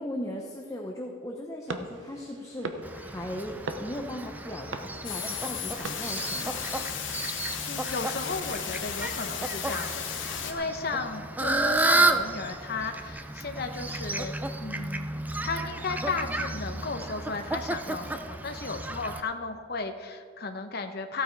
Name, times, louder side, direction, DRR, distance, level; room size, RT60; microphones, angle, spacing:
voice 1, 0.0-6.7, left 1 dB, 15° left, 0 dB, 0.8 m, -38 dB
sound 1, 1.7-6.8, right 2 dB, 65° right, 0.8 m, -41 dB
Fowl, 2.8-19.2, right 2 dB, 10° right, 0.4 m, -32 dB
sound 2, 5.0-10.5, left 8 dB, 65° left, 1.1 m, -35 dB
voice 2, 7.6-15.1 15.4-21.2, left 4 dB, 50° left, 6 dB, 0.9 m, -34 dB
14.5 x 8.5 x 4.6 m, 2.1 s
head